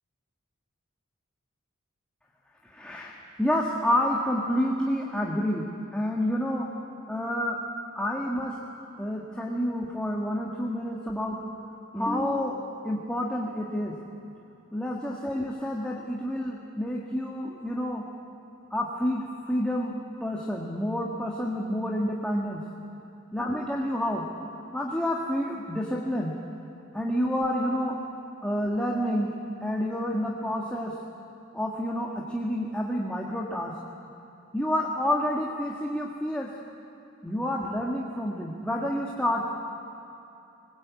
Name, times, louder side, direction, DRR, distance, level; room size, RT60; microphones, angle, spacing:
voice 1, 2.6-6.7 7.1-7.6 7.9-8.6 9.0-11.4 11.9-14.0 14.7-18.0 18.7-19.9 20.2-22.6 23.3-24.2 24.7-26.4 26.9-28.0 28.4-29.3 29.6-31.0 31.5-33.8 34.5-36.5 37.2-39.5, equal, 5° left, -3 dB, 1.6 m, -29 dB
22.0 x 19.5 x 8.3 m, 2.8 s
head